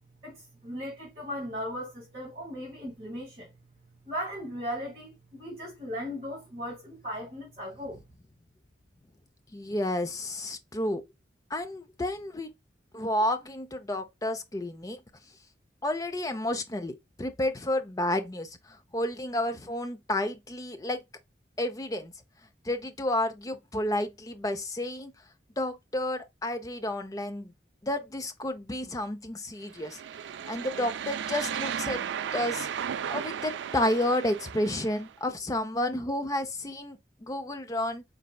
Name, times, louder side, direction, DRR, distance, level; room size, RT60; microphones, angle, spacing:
voice 1, 0.2-3.5 4.1-8.0, equal, 35° right, 2.3 m, -37 dB
voice 2, 9.5-11.0 11.5-12.5 12.9-15.0 15.8-21.0 21.6-22.1 22.6-25.1 25.6-27.5 27.8-30.0 30.5-32.0 32.3-32.7 33.1-38.0, left 1 dB, 20° left, 0.6 m, -31 dB
sound 1, 29.7-35.1, right 8 dB, 80° right, 0.3 m, -35 dB
4.3 x 4.0 x 2.3 m
head